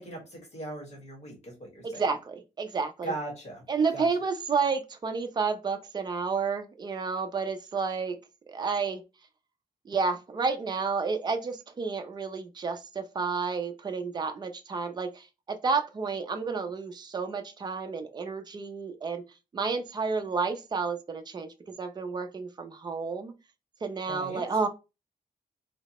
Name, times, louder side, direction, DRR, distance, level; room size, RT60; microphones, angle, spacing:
voice 1, 0.0-2.0 3.0-3.6 3.9-4.1 24.1-24.4, right 2 dB, 45° left, 1.4 m, -39 dB
voice 2, 1.8-3.1 3.7-8.2 8.5-9.0 9.9-19.2 19.5-23.4 23.8-24.7, right 5 dB, 25° right, 0.4 m, -31 dB
3.5 x 2.0 x 2.9 m
wide cardioid pair, 170°, 16 cm